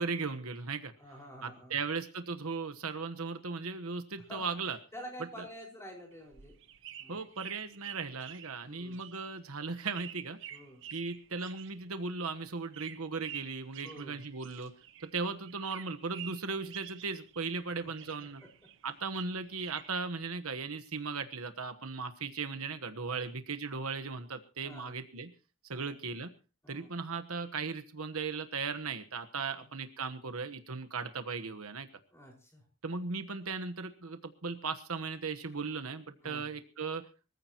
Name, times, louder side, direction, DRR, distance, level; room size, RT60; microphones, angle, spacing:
voice 1, 0.0-0.9 1.4-4.8 7.1-10.4 10.9-14.7 15.0-18.4 18.8-25.3 25.6-26.3 26.7-31.9 32.8-37.1, right 4 dB, 75° right, 8 dB, 1.2 m, -37 dB
voice 2, 1.0-1.8 4.3-6.6 7.0-7.2 8.6-9.1 10.5-10.8 13.8-14.3 17.8-17.9 23.1-23.3 24.6-24.9 25.7-26.0 26.6-26.9 29.4-29.7 32.1-32.6 36.2-36.5, equal, 10° left, 1 dB, 5.1 m, -49 dB
sound 1, 6.1-15.2 15.4-17.7 17.9-20.0, right 10 dB, 55° right, 1.0 m, -49 dB
23.5 x 15.0 x 3.0 m, 0.33 s
head